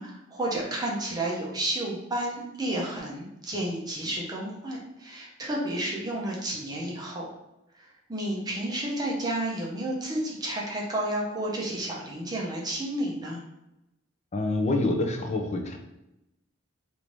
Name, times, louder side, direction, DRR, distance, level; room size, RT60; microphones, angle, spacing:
voice 1, 0.0-7.3 7.7-13.4, right 1 dB, 20° right, -3 dB, 0.7 m, -31 dB
voice 2, 14.3-15.8, left 2 dB, 30° left, 4 dB, 0.4 m, -26 dB
3.3 x 2.6 x 3.0 m, 0.91 s
head